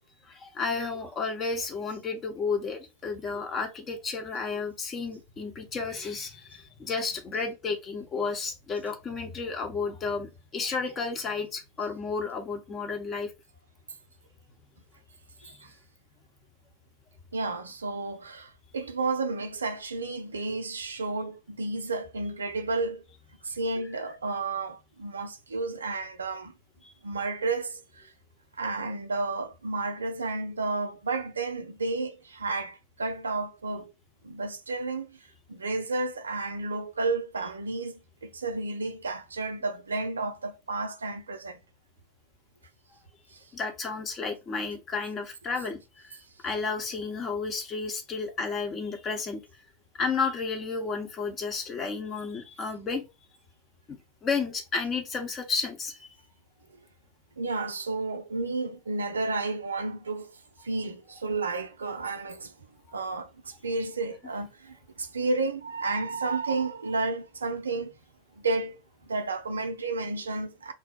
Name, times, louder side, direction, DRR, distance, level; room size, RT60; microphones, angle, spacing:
voice 1, 0.3-13.3 15.4-15.6 26.8-26.9 43.5-46.2 46.4-49.4 50.0-53.0 54.2-56.1 62.9-63.0, left 4 dB, 30° left, 0.8 m, -32 dB
voice 2, 17.3-23.0 23.4-26.5 27.0-28.1 28.6-33.9 34.2-35.2 35.5-41.6 43.3-43.4 57.4-62.5 62.9-68.0 68.4-70.7, right 3 dB, 80° right, 0.4 m, -32 dB
2.6 x 2.1 x 4.0 m
figure-of-eight pair, 85°, 0 cm